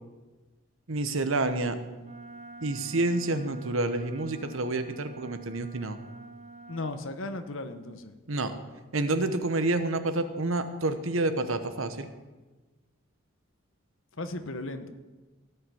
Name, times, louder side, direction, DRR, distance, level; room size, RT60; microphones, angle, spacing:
voice 1, 0.9-1.8 2.6-6.0 8.3-8.5 8.9-12.1, right 2 dB, 75° right, 9 dB, 1.1 m, -28 dB
Wind instrument woodwind instrument, 2.0-7.0, right 4 dB, 30° right, 0.9 m, -47 dB
voice 2, 6.7-8.1 14.2-14.9, left 2 dB, 70° left, 8 dB, 1.1 m, -36 dB
16.5 x 5.8 x 9.2 m, 1.2 s
head